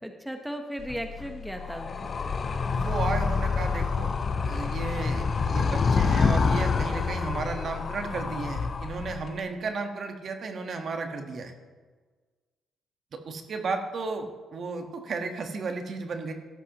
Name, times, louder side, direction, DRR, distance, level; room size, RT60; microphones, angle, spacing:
voice 1, 0.0-2.1, equal, 5° right, 5 dB, 1.1 m, -36 dB
Animal, 0.8-9.4, left 5 dB, 40° left, 0.7 m, -27 dB
voice 2, 2.7-4.1 4.4-11.5 13.1-16.3, right 4 dB, 55° right, 5 dB, 1.4 m, -34 dB
13.0 x 12.0 x 3.0 m, 1.4 s
cardioid pair, 90°, 0 cm